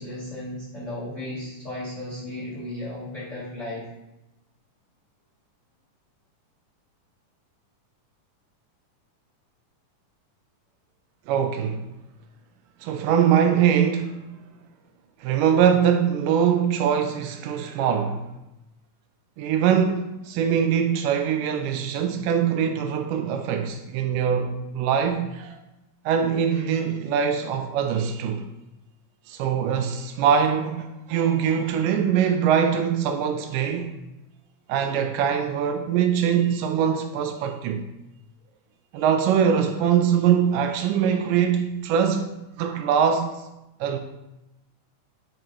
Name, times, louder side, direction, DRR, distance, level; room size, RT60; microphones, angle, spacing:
voice 1, 0.0-3.8, left 1 dB, 55° left, 0.8 m, -35 dB
voice 2, 11.3-11.9 12.8-14.2 15.2-18.2 19.4-25.6 26.1-28.4 29.3-33.9 34.7-37.9 38.9-42.3 42.6-43.4 43.8-44.0, right 8 dB, 85° right, 2.1 m, -22 dB
9.1 x 5.3 x 3.0 m
omnidirectional pair, 3.7 m